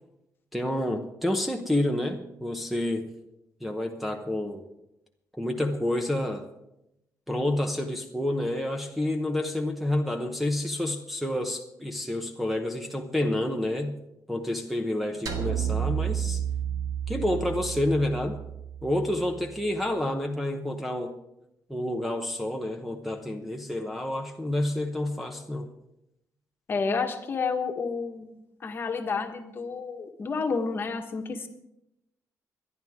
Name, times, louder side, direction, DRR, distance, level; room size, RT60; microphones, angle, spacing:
voice 1, 0.5-3.1 3.6-4.6 5.4-6.5 7.3-13.9 14.3-16.4 17.1-18.4 18.8-21.1 21.7-25.7, left 1 dB, ahead, 1 dB, 1.0 m, -29 dB
sound 1, 15.3-19.6, right 9 dB, 70° right, 1.8 m, -31 dB
voice 2, 26.7-28.3 28.6-31.5, left 4 dB, 35° left, 5 dB, 1.4 m, -30 dB
25.0 x 11.0 x 3.7 m, 0.86 s
wide cardioid pair, 160°, 6 cm